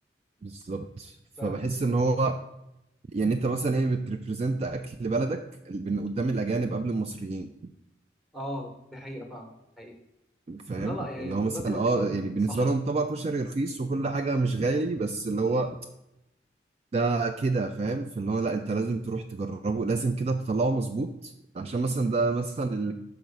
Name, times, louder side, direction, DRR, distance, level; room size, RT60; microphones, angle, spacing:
voice 1, 0.4-1.2 1.4-2.4 3.1-7.5 10.5-15.8 16.9-22.9, right 3 dB, 35° right, 7 dB, 0.3 m, -28 dB
voice 2, 1.4-1.9 8.3-9.5 9.8-10.0 10.7-12.7 15.5-15.6 21.6-22.0, left 1 dB, ahead, 3 dB, 1.0 m, -39 dB
6.1 x 4.7 x 5.2 m, 0.89 s
head